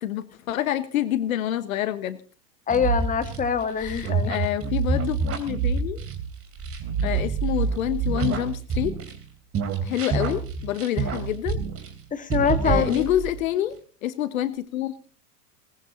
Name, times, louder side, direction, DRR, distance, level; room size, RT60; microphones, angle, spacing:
voice 1, 0.0-2.2 3.8-6.0 7.0-9.0 9.8-11.6 12.6-13.8 14.0-15.1, left 12 dB, 60° left, 15 dB, 1.2 m, -27 dB
voice 2, 2.7-4.3 12.1-13.1, left 7 dB, 15° left, 10 dB, 1.7 m, -24 dB
sound 1, 2.7-9.2 9.5-12.0 12.3-13.4, right 5 dB, 30° right, 3.3 m, -27 dB
20.0 x 19.5 x 2.7 m, 0.38 s
figure-of-eight pair, 85°, 47 cm